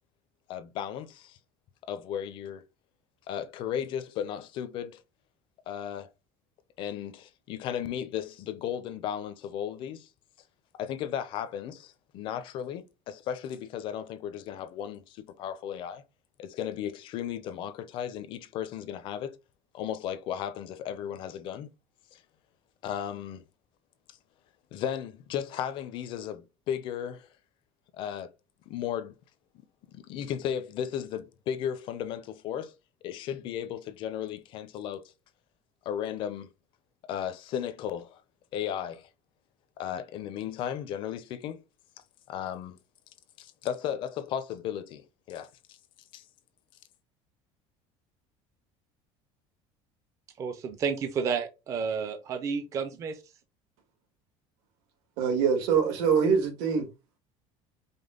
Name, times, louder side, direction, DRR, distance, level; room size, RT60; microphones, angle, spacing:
voice 1, 0.5-1.4 1.8-2.6 3.3-5.0 5.7-6.1 6.8-10.1 10.7-16.0 16.4-19.4 19.7-21.7 22.1-22.2 22.8-23.4 24.7-27.3 27.9-28.3 28.7-29.1 29.9-32.7 33.0-35.0 35.9-36.5 37.1-38.2 38.5-39.1 39.8-41.6 42.3-42.8 43.4-45.8 46.1-46.2, left 9 dB, 40° left, 0.5 m, -35 dB
voice 2, 50.4-53.1, right 6 dB, 25° right, 0.4 m, -31 dB
voice 3, 55.2-56.9, right 6 dB, 80° right, 1.7 m, -24 dB
5.2 x 2.1 x 3.7 m
cardioid pair, 180°, 13 cm